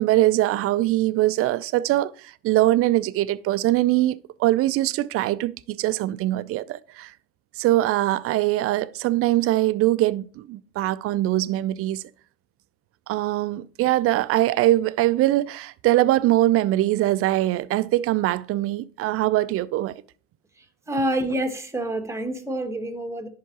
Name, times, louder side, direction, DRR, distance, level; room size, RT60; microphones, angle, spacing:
voice 1, 0.0-7.1 7.6-12.0 13.1-19.9, right 15 dB, 40° right, 0.4 m, -22 dB
voice 2, 20.6-23.3, right 1 dB, 10° right, 1.1 m, -28 dB
10.5 x 3.6 x 2.9 m
hypercardioid pair, 70°, 36 cm